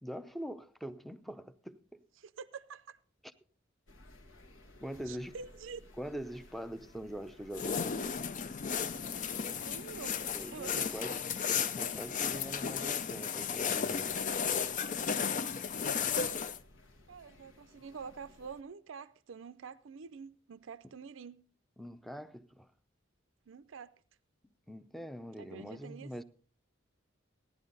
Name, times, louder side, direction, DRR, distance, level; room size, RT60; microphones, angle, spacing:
voice 1, 0.0-2.0 4.8-5.3 6.0-8.2 10.3-11.2 11.5-14.2 21.8-22.7 24.4-26.2, equal, ahead, 0.6 m, -43 dB
voice 2, 2.2-3.0 5.1-5.8 9.6-11.0 17.1-21.4 23.5-23.9 25.4-26.1, right 5 dB, 75° right, 0.5 m, -47 dB
sound 1, 3.9-18.6, left 1 dB, 70° left, 1.5 m, -58 dB
sound 2, 7.5-16.6, left 6 dB, 40° left, 0.5 m, -34 dB
16.0 x 11.0 x 4.0 m
head